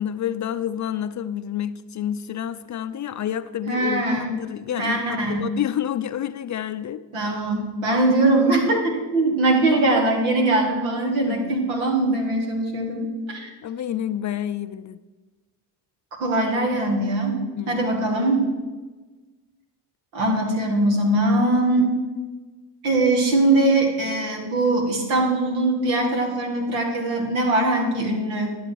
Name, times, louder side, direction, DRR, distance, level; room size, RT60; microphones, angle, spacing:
voice 1, 0.0-7.0 11.3-11.6 13.6-15.0 17.6-17.9 21.8-21.9, left 10 dB, 40° left, 13 dB, 0.5 m, -29 dB
voice 2, 3.7-4.3 4.8-5.5 7.1-13.5 16.2-17.4 17.7-18.4 20.1-21.9 22.8-28.6, right 2 dB, 80° right, 2 dB, 2.2 m, -21 dB
11.0 x 7.3 x 4.6 m, 1.3 s
supercardioid pair, 60°, 47 cm